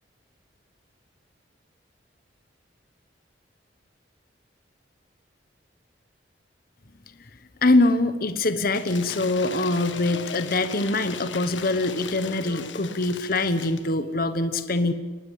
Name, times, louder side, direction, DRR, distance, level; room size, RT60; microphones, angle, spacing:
voice 1, 7.6-14.9, left 2 dB, 50° left, 11 dB, 1.2 m, -23 dB
Cheering / Applause / Crowd, 8.7-13.9, left 6 dB, 85° left, 1.6 m, -38 dB
24.5 x 20.5 x 8.4 m, 1.3 s
head